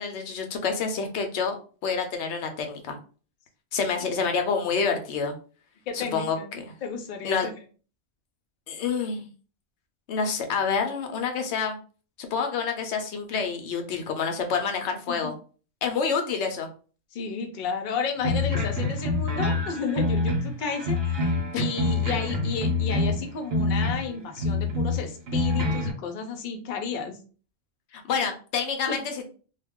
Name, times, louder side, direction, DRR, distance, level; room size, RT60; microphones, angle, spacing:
voice 1, 0.0-1.5 1.8-3.0 3.7-5.3 5.9-6.7 7.2-7.5 8.7-9.3 10.1-11.8 12.2-15.3 15.8-16.7 21.5-21.6 27.9-29.3, left 5 dB, 85° left, 5 dB, 0.9 m, -28 dB
voice 2, 5.9-7.5 15.1-15.3 17.1-27.2 28.9-29.0, left 5 dB, 55° left, 4 dB, 0.6 m, -32 dB
sound 1, 18.2-24.1 24.4-25.9, left 2 dB, 65° right, 0.9 m, -26 dB
2.3 x 2.2 x 3.5 m, 0.38 s
omnidirectional pair, 1.1 m